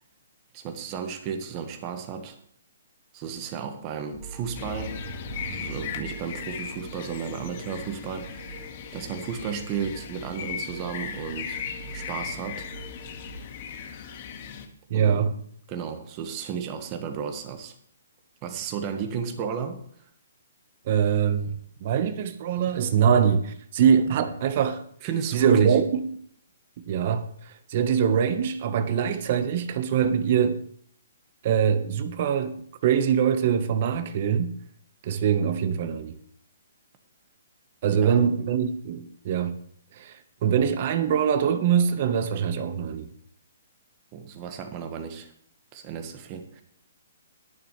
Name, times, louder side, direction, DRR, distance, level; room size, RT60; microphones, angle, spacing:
voice 1, 0.5-2.4 3.1-5.0 5.5-11.6 11.9-12.7 14.9-15.3 15.7-17.7 18.4-19.8 25.0-25.8 37.9-38.2 44.1-45.3 45.7-46.6, right 7 dB, 30° right, 1.5 m, -33 dB
sound 1, 4.1-13.4, right 3 dB, 30° left, 3.0 m, -44 dB
sound 2, 4.5-14.7, left 7 dB, 45° left, 1.8 m, -38 dB
voice 2, 14.9-15.3 20.9-21.5 21.8-24.8 25.3-26.1 26.9-30.6 31.4-34.5 35.0-36.2 37.8-39.5 39.9-43.1, right 8 dB, 45° right, 1.2 m, -23 dB
21.0 x 7.1 x 3.3 m
hypercardioid pair, 150°, 0 cm